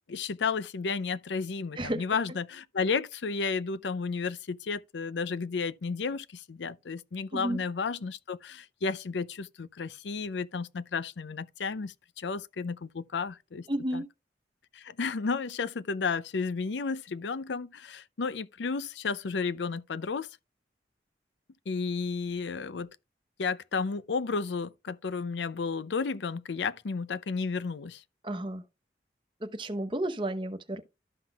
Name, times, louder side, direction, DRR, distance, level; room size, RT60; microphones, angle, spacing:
voice 1, 0.1-13.7 13.9-14.0 14.7-20.3 21.7-22.9 23.4-28.0, left 4 dB, 90° left, 0.5 m, -32 dB
voice 2, 13.7-14.1 28.2-28.6 29.4-30.8, right 1 dB, 30° right, 0.9 m, -32 dB
13.0 x 5.8 x 2.3 m
head